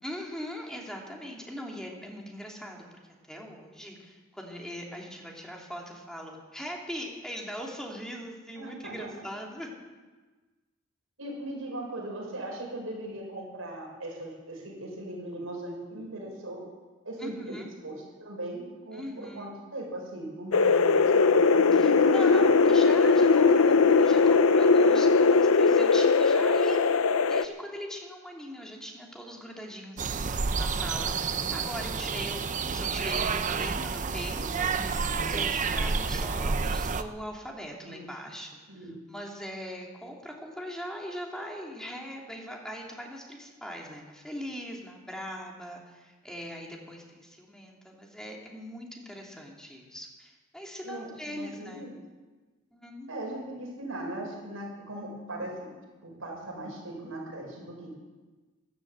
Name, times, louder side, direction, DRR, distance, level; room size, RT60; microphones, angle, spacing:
voice 1, 0.0-2.8 3.3-9.7 17.2-17.7 18.9-19.5 21.7-27.0 27.3-38.5 38.8-51.8 52.7-53.1, equal, 5° left, -1 dB, 2.7 m, -40 dB
voice 2, 8.5-9.1 11.2-16.6 17.0-17.5 17.8-22.4 37.8-38.0 38.7-39.0 50.8-52.0 53.1-55.6 56.0-58.0, right 1 dB, 80° right, -1 dB, 5.8 m, -38 dB
sound 1, 20.5-27.4, left 4 dB, 90° left, 0.7 m, -20 dB
sound 2, 30.0-37.0, right 5 dB, 35° right, 0.6 m, -29 dB
13.5 x 12.0 x 8.1 m, 1.3 s
head